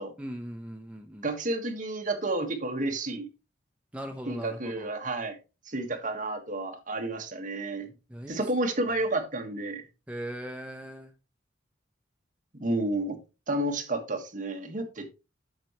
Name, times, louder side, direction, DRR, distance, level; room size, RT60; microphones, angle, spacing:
voice 1, 0.2-1.3 3.9-4.9 8.1-8.4 10.1-11.1, right 1 dB, 5° right, 0.7 m, -39 dB
voice 2, 1.2-3.3 4.3-5.4 5.6-7.9 8.3-9.8 12.6-13.2 13.5-15.1, right 2 dB, 45° right, 1.6 m, -31 dB
8.8 x 6.9 x 3.1 m
head